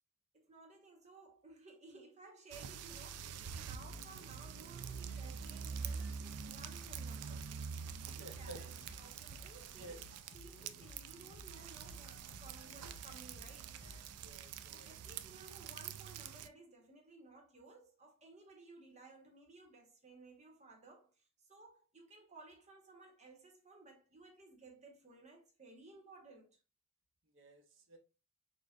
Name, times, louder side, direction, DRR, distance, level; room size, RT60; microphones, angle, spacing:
voice 1, 0.3-7.5 8.0-13.8 14.7-26.6, right 3 dB, 30° right, 1.1 m, -58 dB
sound 1, 2.5-16.5, right 6 dB, 85° right, 0.4 m, -46 dB
sound 2, 3.9-14.2, left 2 dB, 85° left, 1.3 m, -58 dB
voice 2, 8.2-8.6 9.8-10.0 14.2-15.0 27.3-27.6 27.9-28.0, right 1 dB, 55° right, 0.9 m, -52 dB
6.3 x 2.4 x 2.5 m
head